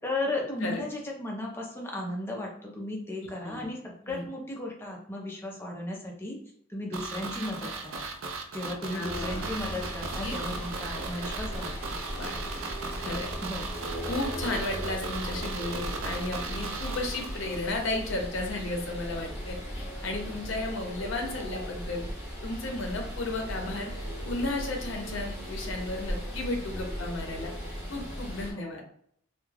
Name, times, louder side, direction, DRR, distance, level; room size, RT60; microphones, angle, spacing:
voice 1, 0.0-6.4 6.7-8.0 8.5-12.0 13.4-13.7 28.5-28.8, left 1 dB, 10° left, -1 dB, 0.6 m, -35 dB
sound 1, 6.9-17.9 18.1-18.2, right 4 dB, 90° right, 0.4 m, -37 dB
voice 2, 8.9-9.5 10.2-10.6 10.9-11.0 12.2-12.4 13.0-13.3 14.1-22.0 22.4-23.9 24.2-27.5 27.9-28.8, left 2 dB, 70° left, 2 dB, 0.6 m, -34 dB
sound 2, 9.1-28.5, equal, 15° right, 1.0 m, -37 dB
2.3 x 2.3 x 3.2 m, 0.66 s
head